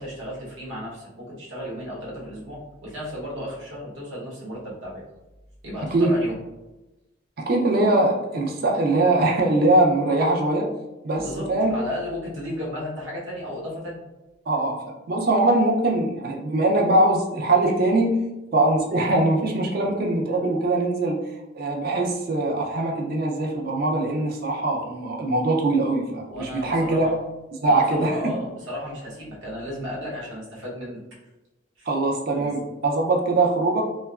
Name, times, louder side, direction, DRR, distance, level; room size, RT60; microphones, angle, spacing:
voice 1, 0.0-5.0 5.6-6.3 11.1-14.0 26.3-27.2 27.6-31.0 31.8-31.9 32.3-32.5, equal, 80° right, -5 dB, 1.0 m, -34 dB
voice 2, 7.4-10.7 11.0-11.7 14.5-18.3 18.5-21.2 21.5-27.1 27.6-28.2 31.9-33.8, right 2 dB, 50° right, 1 dB, 0.4 m, -22 dB
2.8 x 2.2 x 2.3 m, 1.0 s
head